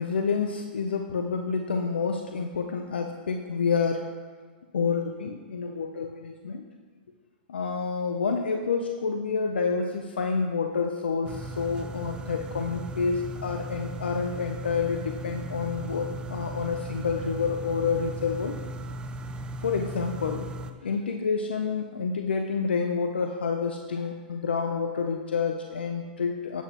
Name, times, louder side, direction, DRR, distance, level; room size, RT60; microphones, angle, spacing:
voice 1, 0.0-4.0 4.7-6.7 7.5-18.6 19.6-26.6, left 5 dB, 90° left, 4 dB, 0.6 m, -28 dB
sound 1, 11.2-20.7, right 1 dB, 15° right, 0.4 m, -37 dB
8.9 x 8.1 x 2.9 m, 1.5 s
hypercardioid pair, 125°, 5 cm